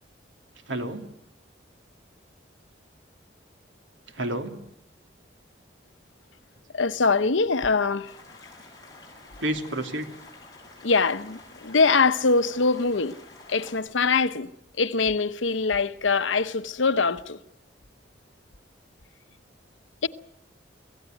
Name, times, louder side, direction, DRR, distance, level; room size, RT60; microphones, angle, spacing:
voice 1, 0.7-1.1 4.1-4.5 9.4-10.1, right 1 dB, 85° right, 2.8 m, -29 dB
voice 2, 6.7-8.1 10.8-13.2 13.5-14.5 14.8-17.4 20.0-20.1, left 4 dB, 90° left, 0.9 m, -23 dB
sound 1, 8.1-13.8, left 2 dB, 20° left, 6.9 m, -49 dB
25.5 x 16.0 x 9.2 m
head